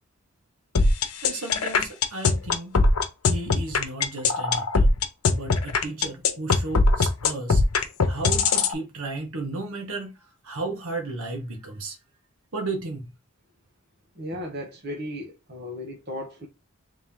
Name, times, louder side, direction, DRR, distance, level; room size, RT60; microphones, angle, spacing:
sound 1, 0.7-8.7, left 4 dB, 85° left, 0.8 m, -20 dB
voice 1, 1.2-2.8 3.3-4.9 5.3-7.6 8.1-12.0 12.5-13.1, right 2 dB, 75° right, 1.3 m, -34 dB
voice 2, 14.2-16.5, left 1 dB, 45° right, 1.0 m, -35 dB
3.5 x 2.9 x 3.6 m
head